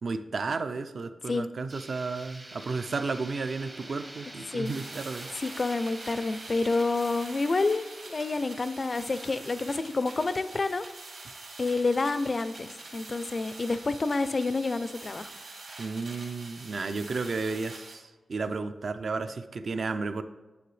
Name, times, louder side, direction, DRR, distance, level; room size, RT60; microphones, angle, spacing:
voice 1, 0.0-5.3 15.8-20.2, right 4 dB, 50° right, 10 dB, 0.5 m, -33 dB
sound 1, 1.7-11.5, right 1 dB, 25° right, 0.8 m, -47 dB
sound 2, 4.7-17.9, right 2 dB, 70° right, 2.2 m, -45 dB
voice 2, 5.4-10.8 11.6-15.3, left 3 dB, 35° left, 13 dB, 0.3 m, -28 dB
9.2 x 7.4 x 3.2 m, 1.2 s
wide cardioid pair, 155°, 0 cm